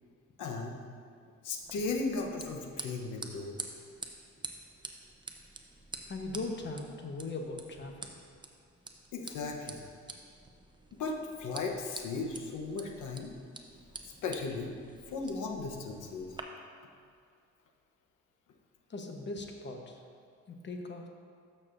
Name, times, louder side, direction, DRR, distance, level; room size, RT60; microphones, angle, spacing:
voice 1, 0.4-0.8 1.4-3.6 9.1-9.9 11.0-13.3 14.2-14.7 15.1-16.3, left 3 dB, 80° left, 2 dB, 1.0 m, -36 dB
sound 1, 1.6-16.4, right 3 dB, 15° right, 0.7 m, -48 dB
voice 2, 6.1-8.1 18.9-20.0 20.5-21.1, left 2 dB, 35° left, 3 dB, 1.0 m, -39 dB
12.5 x 6.4 x 2.6 m, 2.2 s
cardioid pair, 90°, 30 cm